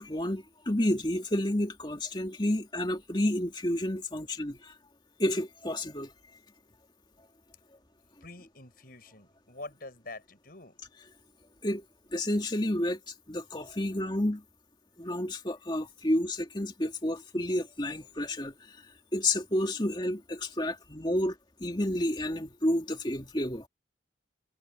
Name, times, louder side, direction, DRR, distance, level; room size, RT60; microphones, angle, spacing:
voice 1, 0.0-4.7 5.2-6.1 11.6-11.8 12.1-13.0 13.3-14.4 15.0-18.5 19.1-23.7, left 1 dB, 25° left, 2.3 m, -30 dB
voice 2, 8.2-10.8, left 2 dB, 50° left, 6.9 m, -46 dB
head